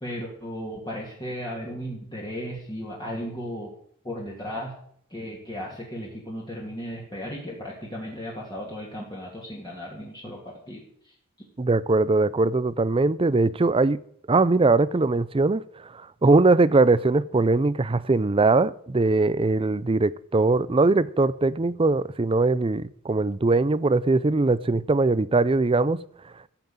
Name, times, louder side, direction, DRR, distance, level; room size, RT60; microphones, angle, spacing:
voice 1, 0.0-3.7 4.0-4.7 5.1-10.8, equal, 20° left, 2.4 m, -35 dB
voice 2, 11.6-14.0 14.3-15.6 16.2-26.0, right 3 dB, 25° right, 0.5 m, -21 dB
14.5 x 5.9 x 8.7 m
head